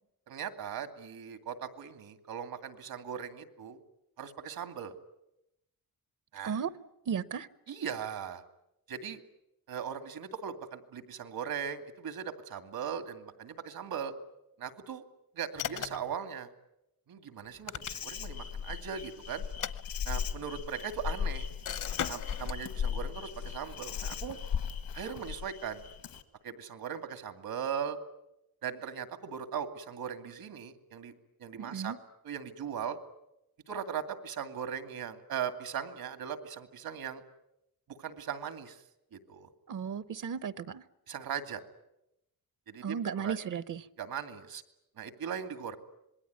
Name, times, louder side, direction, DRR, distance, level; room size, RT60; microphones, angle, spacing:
voice 1, 0.3-3.8 4.2-4.9 6.3-6.6 7.7-8.4 8.9-9.2 9.7-14.1 14.6-15.0 15.4-16.5 17.1-19.4 20.1-21.5 22.1-24.4 24.9-25.8 26.4-28.0 28.6-31.1 31.4-31.9 32.2-33.0 33.7-37.2 37.9-38.8 39.1-39.5 41.1-41.6 42.7-43.4 44.0-44.6 45.0-45.8, right 7 dB, 85° right, 9 dB, 2.4 m, -39 dB
voice 2, 7.1-7.5 31.6-32.0 39.7-40.8 42.8-43.9, right 7 dB, 60° right, 16 dB, 0.9 m, -35 dB
sound 1, 15.6-16.2 17.4-18.3 19.5-20.4 21.6-22.6, left 9 dB, 60° left, 1.0 m, -38 dB
Insect, 17.8-26.2, left 7 dB, 80° left, 1.9 m, -37 dB
26.5 x 21.0 x 9.5 m, 0.86 s
wide cardioid pair, 170°, 35 cm